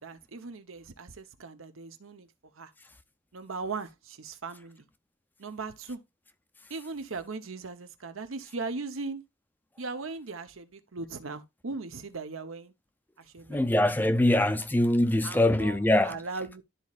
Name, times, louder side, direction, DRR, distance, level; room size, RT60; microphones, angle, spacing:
voice 1, 0.0-2.3 2.5-2.7 3.3-4.8 5.4-6.0 6.7-9.2 9.8-12.7 13.2-13.6 14.0-14.5 15.2-16.6, right 4 dB, 80° right, 0.9 m, -39 dB
voice 2, 13.5-16.2, left 1 dB, 10° left, 0.4 m, -23 dB
12.5 x 4.2 x 2.4 m
head